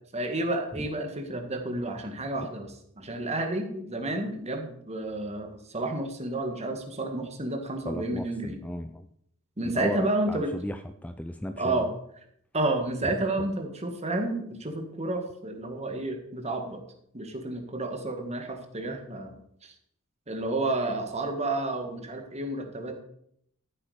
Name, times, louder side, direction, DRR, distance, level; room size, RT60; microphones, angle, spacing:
voice 1, 0.1-8.6 9.6-10.5 11.6-11.9 12.5-16.8 17.1-19.3 19.6-19.7 20.3-23.0, right 2 dB, 30° right, 5 dB, 1.8 m, -31 dB
voice 2, 7.9-9.1 9.6-11.9 13.4-13.5, left 1 dB, 5° left, 8 dB, 0.4 m, -36 dB
13.5 x 8.3 x 5.0 m, 0.70 s
head